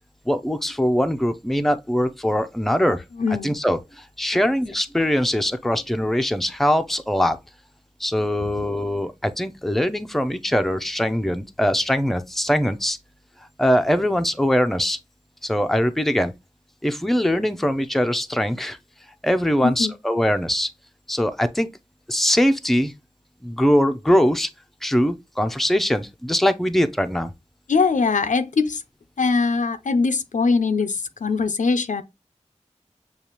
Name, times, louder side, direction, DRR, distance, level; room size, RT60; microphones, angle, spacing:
voice 1, 0.3-3.0 3.4-7.4 8.0-13.0 13.6-15.0 15.4-16.3 16.8-18.8 19.2-20.7 21.1-21.7 22.1-22.9 23.4-24.5 24.8-27.3, equal, ahead, 0.5 m, -22 dB
voice 2, 3.1-3.6 8.4-8.7 19.6-19.9 27.7-28.8 29.2-32.0, left 4 dB, 85° left, 0.5 m, -22 dB
6.8 x 2.4 x 2.9 m
wide cardioid pair, 50°, 13 cm